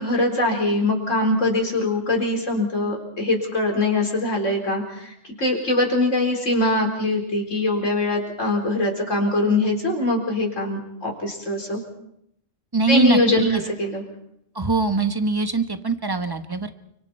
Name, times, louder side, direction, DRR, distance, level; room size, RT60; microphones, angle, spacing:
voice 1, 0.0-11.8 12.9-13.5 13.8-14.0, left 2 dB, 85° left, 0 dB, 4.8 m, -22 dB
voice 2, 12.7-13.6 14.5-16.8, right 3 dB, 20° right, 9 dB, 1.1 m, -22 dB
30.0 x 25.0 x 4.4 m, 0.75 s
omnidirectional pair, 1.3 m